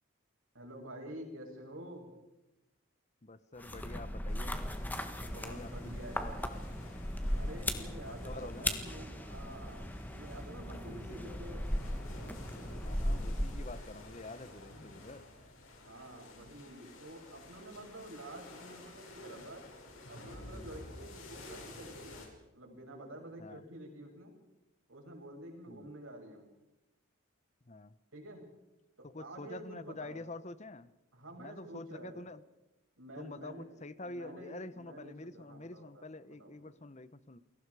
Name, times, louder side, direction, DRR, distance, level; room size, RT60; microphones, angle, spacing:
voice 1, 0.5-2.1 5.2-6.6 7.3-9.8 10.1-11.6 15.8-22.3 22.5-24.3 24.9-26.5 28.1-28.4 29.0-30.3 31.1-32.3 33.0-33.7 34.0-36.7, right 1 dB, 75° right, 1 dB, 7.3 m, -49 dB
voice 2, 3.2-4.6 5.2-6.0 7.7-8.8 10.6-11.4 12.8-15.2 23.4-23.6 25.7-25.9 27.7-28.0 29.0-30.9 31.4-32.4 33.2-37.4, left 2 dB, 35° left, 15 dB, 1.0 m, -47 dB
sound 1, 3.6-14.0, left 1 dB, 10° left, 1.5 m, -37 dB
sound 2, 4.3-22.3, left 2 dB, 85° left, 5.7 m, -52 dB
29.5 x 22.0 x 4.9 m, 0.97 s
head